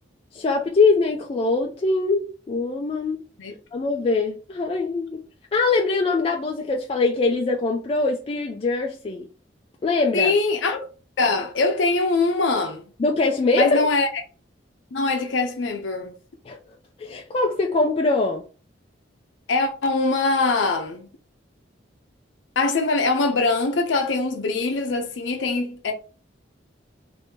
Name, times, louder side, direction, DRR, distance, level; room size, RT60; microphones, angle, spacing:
voice 1, 0.3-3.2 3.7-5.2 5.5-9.3 9.8-10.4 13.0-13.8 16.5-16.6 17.0-18.4, left 3 dB, 30° left, 0.3 m, -22 dB
voice 2, 10.1-10.9 11.2-12.8 13.5-14.1 14.9-16.2 19.5-21.1 22.6-25.9, left 3 dB, 85° left, 0.6 m, -22 dB
2.8 x 2.6 x 3.5 m
head